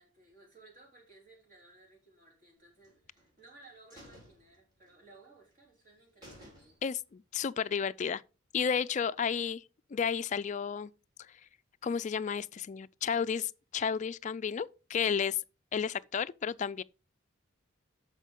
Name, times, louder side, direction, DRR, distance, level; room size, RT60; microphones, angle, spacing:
voice 1, 0.0-6.8 15.9-16.0, right 2 dB, 40° right, 3.3 m, -59 dB
sound 1, 2.8-3.5 3.9-5.2 5.5-5.6 5.9-6.0 6.2-7.1 7.5-7.6, equal, 20° right, 4.8 m, -55 dB
voice 2, 6.8-8.2 8.5-9.6 9.9-10.9 11.8-15.4 15.7-16.8, left 7 dB, 35° left, 0.3 m, -32 dB
13.0 x 5.0 x 3.7 m
head